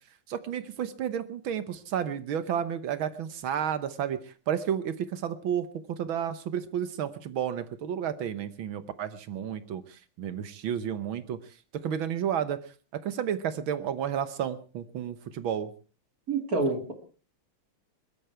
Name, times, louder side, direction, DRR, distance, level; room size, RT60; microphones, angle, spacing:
voice 1, 0.3-11.4 11.8-12.6 13.0-15.7, right 9 dB, 75° right, 13 dB, 1.8 m, -31 dB
voice 2, 16.3-16.9, right 3 dB, 45° right, 4 dB, 2.7 m, -27 dB
21.5 x 13.0 x 4.6 m, 0.37 s
omnidirectional pair, 2.3 m